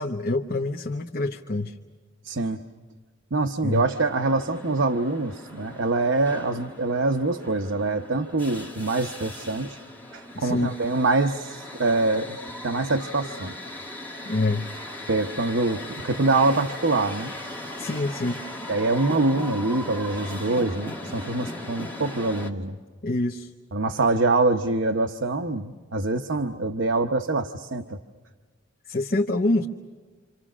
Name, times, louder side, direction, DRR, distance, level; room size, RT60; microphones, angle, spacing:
voice 1, 0.0-1.7 3.6-3.8 10.3-10.7 14.2-14.7 17.8-18.4 23.0-23.5 28.9-29.7, left 2 dB, 50° left, 2 dB, 0.9 m, -26 dB
voice 2, 2.2-2.6 3.3-9.8 10.1-12.4 12.6-13.5 15.1-17.3 18.7-22.8 23.7-28.0, right 3 dB, 70° right, 6 dB, 0.9 m, -25 dB
sound 1, 3.7-22.5, left 1 dB, 10° left, 2.4 m, -38 dB
28.0 x 27.5 x 6.2 m, 1.5 s
head